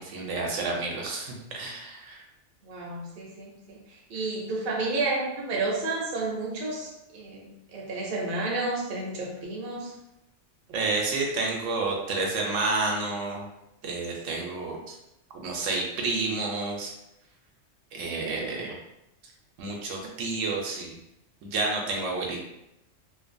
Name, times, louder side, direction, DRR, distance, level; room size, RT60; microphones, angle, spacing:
voice 1, 0.0-2.2 10.7-13.5 13.8-15.0 15.3-16.9 17.9-18.8 19.6-21.0 21.4-22.4, right 3 dB, 85° right, 0 dB, 0.9 m, -30 dB
voice 2, 2.6-9.9, right 2 dB, 55° right, -2 dB, 0.7 m, -31 dB
2.6 x 2.2 x 2.5 m, 0.87 s
omnidirectional pair, 1.3 m